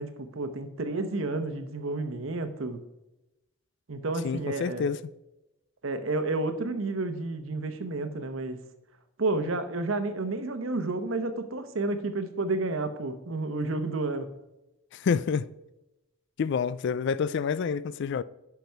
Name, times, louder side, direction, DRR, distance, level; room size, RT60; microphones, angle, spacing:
voice 1, 0.0-2.8 3.9-4.8 5.8-8.6 9.2-14.3, right 2 dB, 70° right, 0.9 m, -31 dB
voice 2, 4.2-5.0 14.9-15.5 16.4-18.2, left 6 dB, 60° left, 0.3 m, -28 dB
10.5 x 5.9 x 4.6 m
head